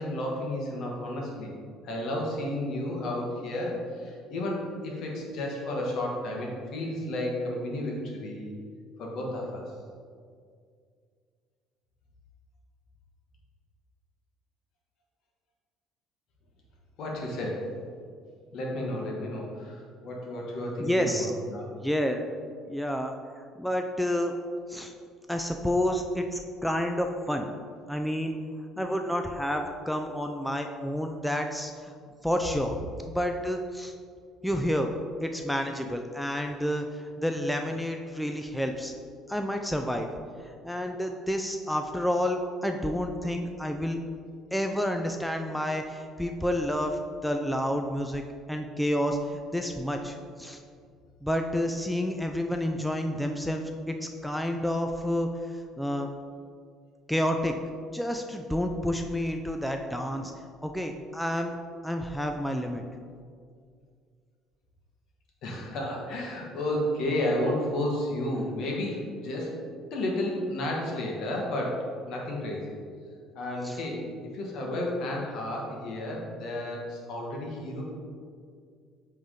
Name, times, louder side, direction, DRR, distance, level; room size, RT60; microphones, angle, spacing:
voice 1, 0.0-1.5 1.8-8.5 9.0-9.6 17.0-17.7 18.5-21.7 65.4-69.6 69.9-72.7 73.3-74.0 74.3-77.8, left 1 dB, 65° left, -1 dB, 1.4 m, -32 dB
voice 2, 20.8-21.3 21.8-22.3 22.7-24.3 24.7-24.9 25.3-27.5 27.9-28.4 28.8-31.9 32.2-32.8 33.1-33.9 34.4-34.9 35.2-38.9 39.3-40.1 40.4-44.0 44.5-48.2 48.5-50.6 51.2-56.1 57.1-57.5 57.9-60.3 60.6-61.6 61.8-62.8 73.6-73.8, equal, ahead, 4 dB, 0.4 m, -29 dB
7.7 x 3.6 x 3.7 m, 2.2 s
cardioid pair, 105°, 0 cm